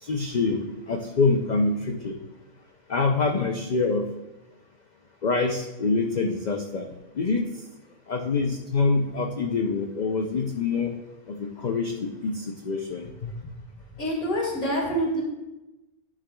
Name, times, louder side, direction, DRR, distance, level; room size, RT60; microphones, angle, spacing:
voice 1, 0.0-2.2 2.9-4.1 5.2-6.9 7.1-7.5 8.1-10.9 11.3-13.3, left 4 dB, 65° left, 3 dB, 0.4 m, -25 dB
voice 2, 14.0-15.2, equal, 80° left, -2 dB, 2.6 m, -26 dB
11.5 x 7.3 x 2.2 m, 1.0 s
omnidirectional pair, 1.5 m